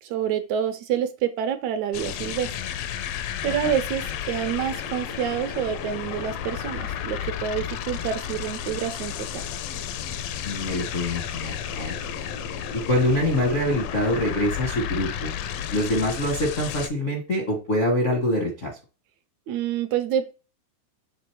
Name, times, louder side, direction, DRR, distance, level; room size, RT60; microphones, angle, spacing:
voice 1, 0.0-2.5 3.4-9.5 19.5-20.3, right 9 dB, 80° right, 8 dB, 1.8 m, -27 dB
sound 1, 1.9-16.9, left 9 dB, 80° left, 1.5 m, -32 dB
voice 2, 10.4-12.0 12.7-15.3 15.7-18.8, left 1 dB, 65° left, -2 dB, 0.7 m, -25 dB
6.8 x 3.6 x 4.5 m, 0.31 s
omnidirectional pair, 3.5 m